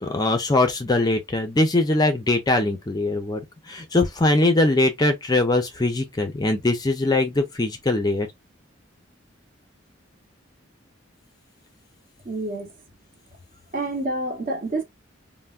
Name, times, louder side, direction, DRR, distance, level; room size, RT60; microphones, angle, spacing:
voice 1, 0.0-3.4 3.7-8.3, left 2 dB, 20° left, 0.4 m, -21 dB
voice 2, 12.2-12.7 13.7-14.8, right 2 dB, 45° right, 0.8 m, -28 dB
3.3 x 2.0 x 2.4 m
head